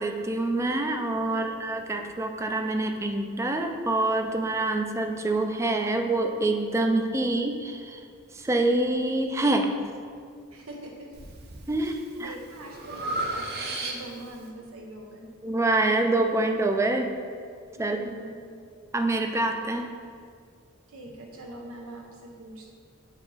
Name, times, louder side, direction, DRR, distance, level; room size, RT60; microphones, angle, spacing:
voice 1, 0.0-8.0 8.3-9.7 11.7-12.3 15.4-17.1 17.8-18.0 18.9-19.9, right 2 dB, 15° right, 5 dB, 0.4 m, -26 dB
voice 2, 1.2-1.6 10.5-11.2 11.8-15.3 17.7-18.4 20.9-22.7, right 1 dB, 85° right, 1 dB, 0.9 m, -44 dB
Breathing, 11.1-11.6 12.1-14.3, right 2 dB, 50° right, 0.7 m, -33 dB
7.2 x 2.9 x 5.6 m, 2.2 s
head